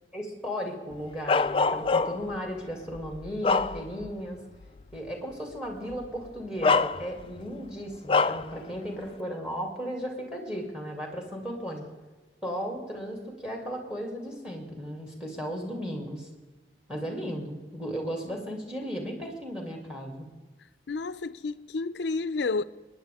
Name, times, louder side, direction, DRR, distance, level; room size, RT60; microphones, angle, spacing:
voice 1, 0.1-4.4 4.9-11.8 12.4-16.3 16.9-20.3, equal, 5° right, 2.6 m, -35 dB
Bark, 1.3-2.4 2.9-4.2 4.6-4.8 5.9-6.1 6.6-7.4 8.1-8.5, left 4 dB, 30° left, 0.3 m, -25 dB
voice 2, 20.9-22.6, left 3 dB, 80° left, 0.5 m, -30 dB
22.0 x 10.0 x 3.6 m
head